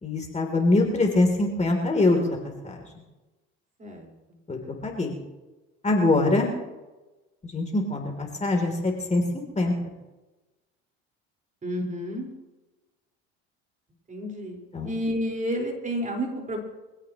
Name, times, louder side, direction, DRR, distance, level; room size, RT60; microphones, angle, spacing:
voice 1, 0.0-2.4 2.6-2.8 4.5-5.2 5.8-6.5 7.4-9.7 14.7-14.9, left 2 dB, 25° left, 1 dB, 3.4 m, -23 dB
voice 2, 3.8-4.4 11.6-12.3 14.1-16.6, equal, 25° right, 1 dB, 4.8 m, -31 dB
24.5 x 16.5 x 3.1 m, 1.1 s
supercardioid pair, 85°, 30 cm